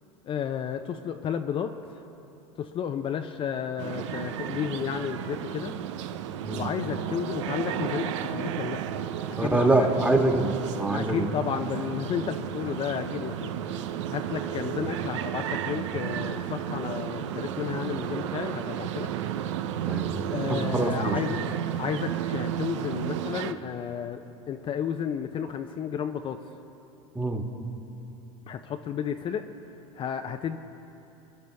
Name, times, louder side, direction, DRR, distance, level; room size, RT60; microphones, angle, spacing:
voice 1, 0.2-1.7 1.9-2.0 2.6-5.8 6.5-8.8 9.4-9.9 10.2-10.4 10.9-13.5 14.1-19.1 20.3-21.4 21.8-24.2 24.5-26.4 28.5-29.4 30.0-30.6, left 8 dB, 35° left, 6 dB, 0.7 m, -32 dB
sound 1, 3.8-23.5, right 10 dB, 75° right, 0.7 m, -33 dB
voice 2, 9.4-11.3 19.8-21.2 27.1-27.4, right 2 dB, 10° right, 3 dB, 1.6 m, -25 dB
26.0 x 10.5 x 3.5 m, 3.0 s
hypercardioid pair, 100°, 15 cm